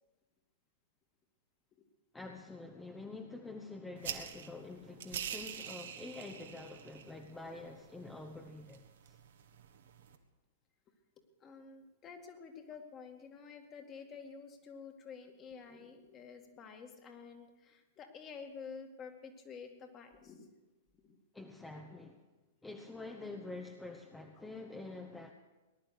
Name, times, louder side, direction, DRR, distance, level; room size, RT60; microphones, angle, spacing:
voice 1, 2.1-9.2 21.3-22.2 22.6-25.3, left 3 dB, 10° left, 4 dB, 1.1 m, -47 dB
sound 1, 4.0-10.2, right 8 dB, 60° right, 1.4 m, -46 dB
voice 2, 11.4-20.5, left 5 dB, 30° left, 4 dB, 2.2 m, -50 dB
19.0 x 11.0 x 6.6 m, 1.1 s
figure-of-eight pair, 105°, 0 cm